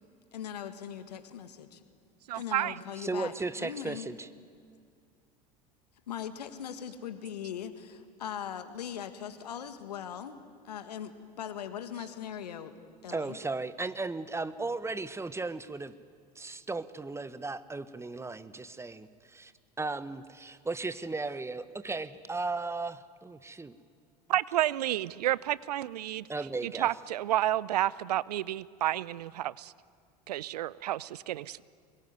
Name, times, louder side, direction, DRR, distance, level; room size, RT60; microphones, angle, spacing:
voice 1, 0.3-1.8 2.3-4.1 6.1-12.7 13.0-13.4, left 9 dB, 80° left, 10 dB, 1.8 m, -40 dB
voice 2, 2.3-2.8 24.3-26.3 26.6-29.7 30.3-31.6, right 13 dB, 75° right, 21 dB, 0.6 m, -30 dB
voice 3, 3.0-4.3 13.1-15.9 16.3-19.5 19.8-23.8 26.3-26.9, right 3 dB, 15° right, 14 dB, 1.2 m, -36 dB
24.5 x 21.5 x 9.5 m, 2.2 s
hypercardioid pair, 75°, 20 cm